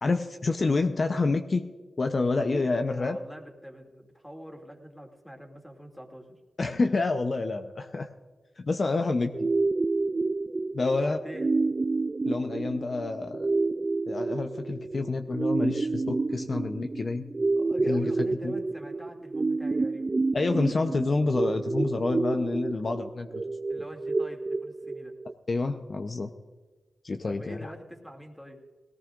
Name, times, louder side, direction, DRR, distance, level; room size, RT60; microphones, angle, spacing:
voice 1, 0.0-1.6 2.0-3.2 6.6-8.1 8.6-9.5 10.7-11.2 12.3-13.4 14.1-17.2 17.9-18.1 18.4-18.5 20.3-23.4 25.5-26.3 27.0-27.7, left 3 dB, 50° left, 6 dB, 0.8 m, -28 dB
voice 2, 2.5-6.4 10.9-11.5 17.6-20.1 23.7-25.2 27.2-28.6, equal, ahead, 2 dB, 2.6 m, -44 dB
sound 1, 9.3-25.3, right 3 dB, 40° right, 0.4 m, -29 dB
18.5 x 17.5 x 2.6 m, 1.3 s
cardioid pair, 50°, 0 cm